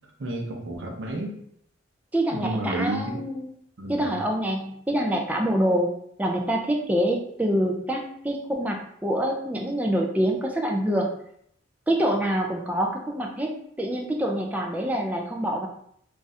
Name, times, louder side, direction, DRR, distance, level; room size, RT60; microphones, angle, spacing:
voice 1, 0.2-1.3 2.3-3.2 3.8-4.1, right 1 dB, 75° right, 0 dB, 0.7 m, -31 dB
voice 2, 2.1-3.5 3.9-5.9 6.2-11.1 11.9-15.7, equal, 10° right, 1 dB, 0.3 m, -26 dB
2.5 x 2.4 x 4.0 m, 0.70 s
head